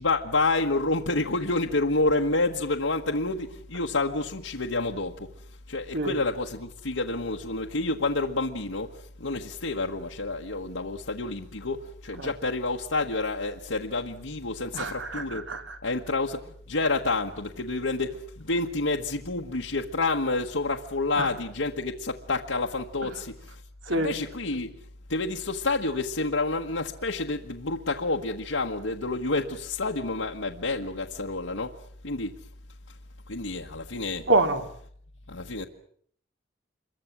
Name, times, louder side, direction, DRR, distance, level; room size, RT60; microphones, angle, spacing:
voice 1, 0.0-5.3 5.7-15.5 15.8-23.6 23.9-24.8 25.1-31.7 32.0-32.3 32.9-33.0 33.3-34.3 35.3-35.7, left 3 dB, 85° left, 1.5 m, -29 dB
voice 2, 14.7-15.8 21.2-21.3 23.0-23.1 23.8-24.2 34.3-34.7, right 2 dB, 70° right, 2.8 m, -26 dB
26.5 x 23.0 x 7.4 m
head